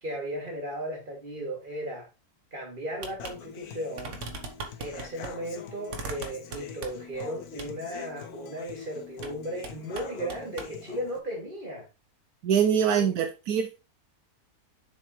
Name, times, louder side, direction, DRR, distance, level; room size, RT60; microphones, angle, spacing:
voice 1, 0.0-2.1 2.5-4.2 4.8-11.9 13.0-13.1, right 1 dB, 30° right, 2.8 m, -36 dB
sound 1, 3.0-3.4 3.6-3.7 4.0-5.3 5.9-7.2 7.6-7.7 9.2-9.4 9.6-10.7, right 3 dB, 55° right, 1.4 m, -39 dB
Human voice / Acoustic guitar, 3.2-11.2, left 7 dB, 80° left, 1.4 m, -44 dB
voice 2, 12.4-13.8, right 8 dB, 80° right, 1.2 m, -24 dB
7.2 x 6.3 x 3.1 m
omnidirectional pair, 1.6 m